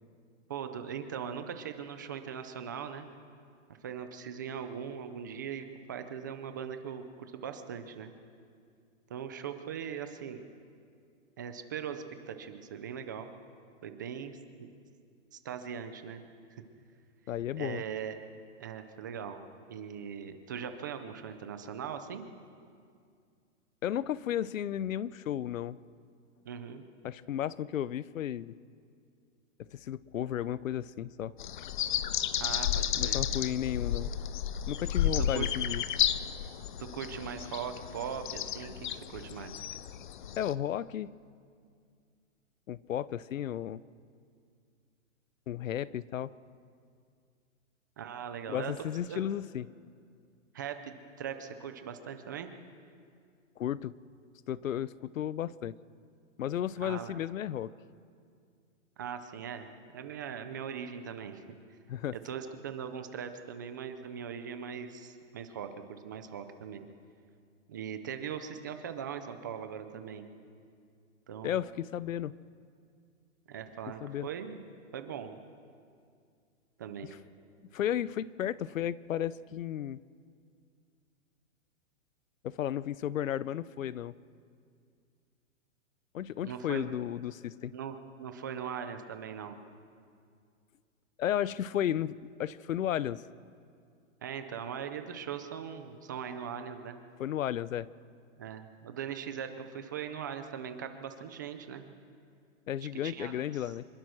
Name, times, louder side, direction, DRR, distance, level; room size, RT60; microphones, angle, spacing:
voice 1, 0.5-3.1 3.8-8.1 9.1-10.4 11.4-13.3 13.8-14.7 15.3-16.2 16.5-16.6 17.6-18.2 18.6-19.4 19.7-22.3 26.4-26.9 32.4-33.2 35.2-35.5 36.8-39.5 48.0-48.7 49.1-49.2 50.5-52.5 56.8-57.1 59.0-61.6 62.1-66.9 67.7-70.3 71.3-71.6 73.5-74.6 74.9-75.3 76.8-77.1 86.5-86.9 87.7-89.6 94.2-97.0 98.4-101.9 103.0-103.7, right 8 dB, 15° right, 8 dB, 0.5 m, -40 dB
voice 2, 17.3-17.8 23.8-25.8 27.0-28.6 29.7-31.3 33.0-34.1 34.7-35.8 40.4-41.1 42.7-43.8 45.5-46.3 48.5-49.7 53.6-53.9 54.5-55.8 56.4-57.7 61.9-62.2 71.4-72.3 74.0-74.3 77.7-80.0 82.4-84.1 86.1-87.7 91.2-93.2 97.2-97.9 102.7-103.9, left 11 dB, 80° left, 19 dB, 0.8 m, -33 dB
sound 1, 31.4-40.5, left 9 dB, 40° left, 0.7 m, -32 dB
25.5 x 22.0 x 6.3 m, 2.3 s
hypercardioid pair, 170°, 39 cm